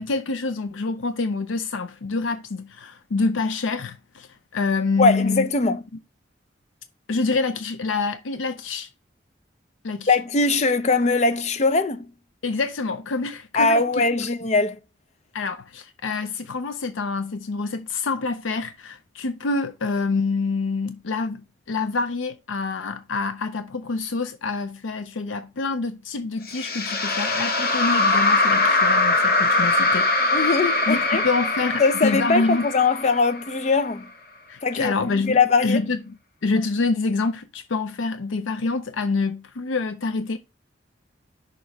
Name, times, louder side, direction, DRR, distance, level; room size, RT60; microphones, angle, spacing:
voice 1, 0.0-5.5 7.1-8.9 9.8-10.2 12.4-14.3 15.3-30.1 30.9-32.7 34.5-36.2 36.4-40.4, left 3 dB, 90° left, 0.6 m, -26 dB
voice 2, 5.0-5.8 10.1-12.1 13.5-14.8 30.3-31.2 31.8-34.1 34.6-35.8, left 3 dB, 35° left, 0.5 m, -21 dB
sound 1, 26.5-33.8, left 2 dB, 50° left, 1.3 m, -22 dB
6.5 x 3.0 x 5.8 m
head